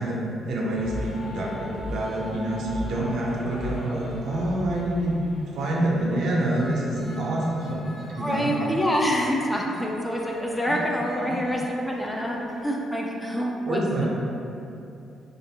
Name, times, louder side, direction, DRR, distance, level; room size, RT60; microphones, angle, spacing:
voice 1, 0.0-5.2 5.5-7.8 8.2-8.5 11.2-11.3 13.6-14.1, right 1 dB, 75° right, -4 dB, 0.5 m, -27 dB
sound 1, 0.6-12.6, left 1 dB, 35° left, 1.2 m, -40 dB
voice 2, 8.2-13.8, equal, 10° left, -1 dB, 0.3 m, -26 dB
2.5 x 2.4 x 2.7 m, 2.7 s
cardioid pair, 90°, 0 cm